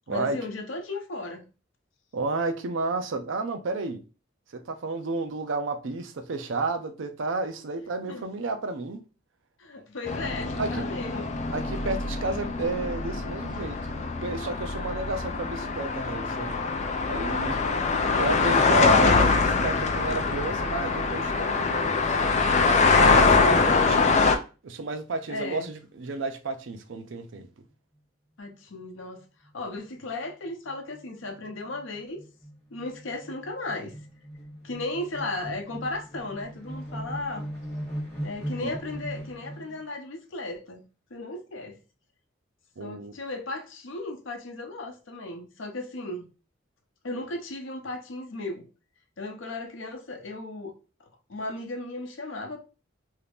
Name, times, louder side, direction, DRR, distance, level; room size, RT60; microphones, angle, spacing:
voice 1, 0.1-1.5 8.1-8.3 9.6-11.3 17.5-18.0 23.6-24.2 25.3-25.7 28.4-29.3 29.5-32.2 32.7-34.0 34.6-37.5 38.2-40.8 41.1-41.8 42.8-46.2 47.0-48.7 49.2-50.7 51.0-52.6, left 2 dB, 75° left, 0.7 m, -36 dB
voice 2, 2.1-4.0 4.5-9.0 10.6-10.8 11.5-13.8 14.2-16.6 17.1-17.6 18.2-22.2 23.0-24.2 24.6-27.5 38.6-38.7 42.8-43.1, right 3 dB, 75° right, 0.5 m, -31 dB
sound 1, 10.1-24.3, left 4 dB, 35° left, 0.3 m, -24 dB
sound 2, 29.2-29.5 29.8-29.9 30.2-39.9, equal, 10° left, 1.0 m, -39 dB
2.8 x 2.4 x 3.4 m
head